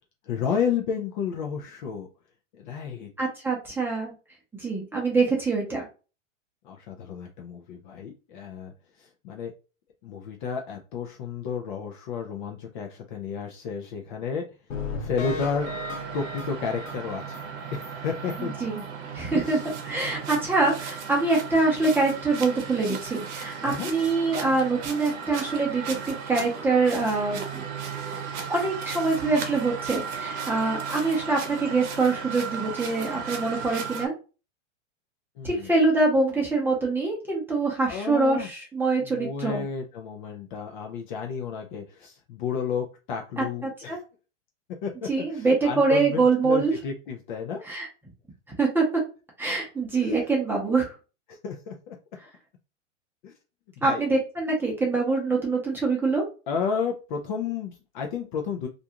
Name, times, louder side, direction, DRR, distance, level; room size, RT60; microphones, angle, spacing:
voice 1, 0.3-2.1 2.5-3.1 6.6-8.7 9.0-9.5 10.0-14.4 15.0-15.7 16.1-17.4 17.7-18.5 19.3-19.6 23.6-23.9 35.4-35.7 37.9-38.5 39.0-44.0 44.8-47.6 49.9-50.2 51.3-52.0 53.2-53.3 53.8-54.0 56.5-58.7, left 6 dB, 40° left, 2 dB, 0.4 m, -32 dB
voice 2, 3.2-4.1 4.6-5.9 18.4-18.8 19.1-19.6 19.9-27.7 28.5-34.1 35.4-39.6 43.4-44.0 45.1-46.7 47.6-47.9 48.6-48.8 49.4-50.9 53.8-56.3, right 3 dB, 5° right, -2 dB, 0.7 m, -24 dB
sound 1, 14.7-17.4 17.8-17.9 18.3-18.4 18.8-18.9, left 3 dB, 90° left, 0.9 m, -35 dB
sound 2, 15.6-34.1, right 6 dB, 65° right, 0.8 m, -36 dB
2.5 x 2.3 x 2.8 m, 0.33 s
hypercardioid pair, 135°, 37 cm